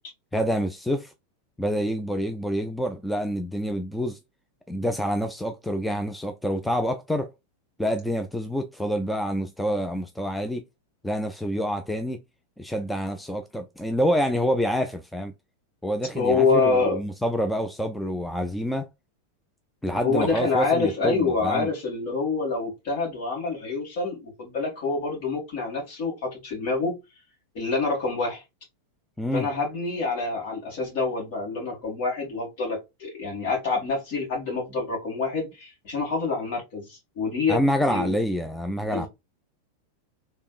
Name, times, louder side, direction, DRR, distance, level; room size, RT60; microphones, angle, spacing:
voice 1, 0.3-1.1 1.6-4.2 4.7-7.3 7.8-10.6 11.0-12.2 12.6-15.3 15.8-18.9 19.8-21.7 29.2-29.5 37.5-39.1, equal, 5° left, 0.4 m, -27 dB
voice 2, 16.1-17.0 20.0-26.9 27.5-28.4 29.3-37.6 37.9-38.1 38.8-39.1, left 4 dB, 50° left, 2.3 m, -26 dB
3.5 x 3.3 x 2.4 m
figure-of-eight pair, 90°, 0 cm